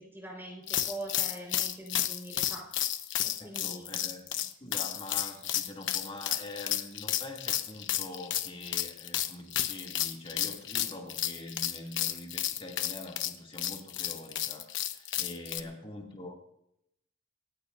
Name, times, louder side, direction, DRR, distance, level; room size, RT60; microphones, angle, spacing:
voice 1, 0.0-2.7 3.2-4.0 4.6-4.8 15.6-15.7, right 1 dB, 10° right, -1 dB, 4.8 m, -43 dB
sound 1, 0.7-15.6, left 12 dB, 65° left, 1.0 m, -32 dB
voice 2, 3.4-16.3, left 1 dB, 25° left, 0 dB, 2.7 m, -44 dB
27.0 x 16.0 x 2.7 m, 0.77 s
head